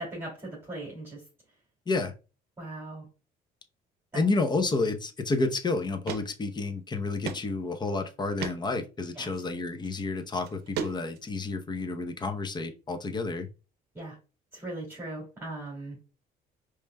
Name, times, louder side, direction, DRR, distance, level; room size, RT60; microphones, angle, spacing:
voice 1, 0.1-1.2 2.6-3.1 4.1-4.2 9.1-9.3 13.9-14.2 14.5-16.0, right 2 dB, 15° right, -5 dB, 2.3 m, -39 dB
voice 2, 4.1-13.5, left 3 dB, 25° left, 7 dB, 0.7 m, -30 dB
sound 1, 5.4-5.5 6.1-6.2 6.6-6.7 7.3-7.4 7.8-7.9 8.4-8.6 9.7-9.9 10.4-11.3, right 7 dB, 75° right, 0.6 m, -34 dB
4.9 x 3.2 x 2.2 m, 0.31 s
cardioid pair, 110°, 17 cm